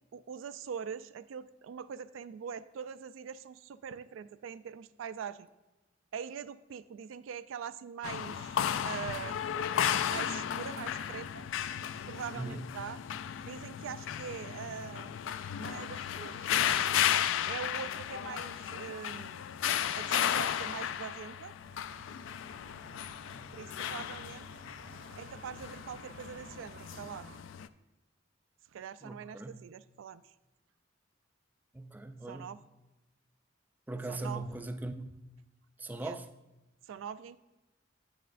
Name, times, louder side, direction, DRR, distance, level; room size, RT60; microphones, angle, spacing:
voice 1, 0.1-5.5 6.1-9.4 10.1-11.4 12.1-13.0 13.5-15.1 15.6-16.5 17.5-19.5 20.0-21.5 23.5-24.5 25.2-27.3 28.7-30.2 32.3-32.6 34.1-34.5 36.0-36.2 36.9-37.4, right 7 dB, 85° right, 0.3 m, -43 dB
sound 1, 8.0-27.7, left 9 dB, 75° left, 0.3 m, -34 dB
voice 2, 12.3-12.7 29.0-29.7 31.7-32.6 33.9-35.1 35.8-36.3, right 2 dB, 10° right, 0.3 m, -40 dB
sound 2, 21.6-27.4, right 2 dB, 55° right, 0.7 m, -54 dB
9.2 x 7.8 x 2.5 m
head